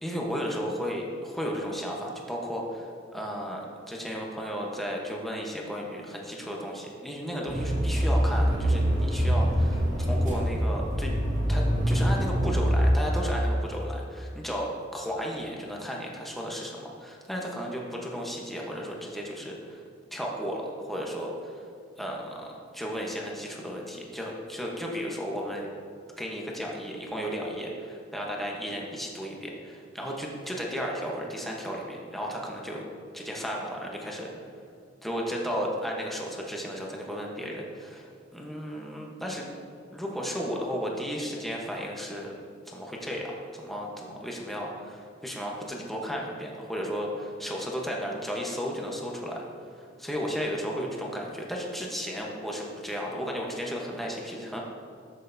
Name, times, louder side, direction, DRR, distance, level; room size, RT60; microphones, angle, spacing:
voice 1, 0.0-11.1 11.5-19.8 20.1-21.7 22.0-25.7 26.2-32.8 33.1-34.3 35.0-39.5 39.9-42.3 42.7-54.6, equal, ahead, -2 dB, 1.0 m, -34 dB
sound 1, 7.5-12.9, equal, 40° right, 1.7 m, -24 dB
13.5 x 6.3 x 2.7 m, 2.4 s
head